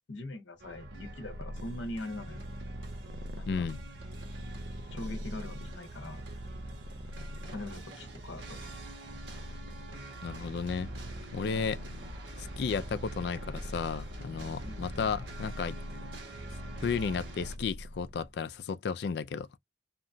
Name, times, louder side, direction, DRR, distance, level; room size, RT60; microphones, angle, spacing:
voice 1, 0.1-2.4 3.3-3.7 4.9-6.2 7.5-8.7 14.6-14.9, left 1 dB, 80° left, 0.7 m, -42 dB
Purr, 0.6-18.3, equal, 60° right, 0.5 m, -43 dB
sound 1, 0.6-17.6, right 1 dB, 80° right, 1.3 m, -48 dB
voice 2, 3.5-3.8 10.2-10.9 11.3-11.8 12.4-15.8 16.8-19.5, left 5 dB, 60° left, 0.3 m, -33 dB
2.8 x 2.2 x 2.6 m
head